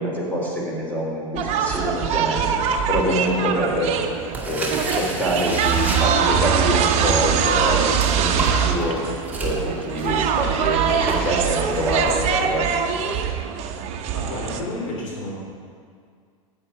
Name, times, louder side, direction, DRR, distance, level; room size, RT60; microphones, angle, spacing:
voice 1, 0.0-4.0 4.4-12.7, equal, 10° left, -3 dB, 3.4 m, -25 dB
sound 1, 1.3-14.6, right 7 dB, 40° right, 0.9 m, -23 dB
sound 2, 4.2-6.6 7.2-12.5, right 3 dB, 10° right, 2.0 m, -31 dB
voice 2, 14.1-15.3, left 1 dB, 65° left, -3 dB, 3.2 m, -30 dB
11.0 x 8.9 x 5.0 m, 2.1 s
figure-of-eight pair, 95°, 17 cm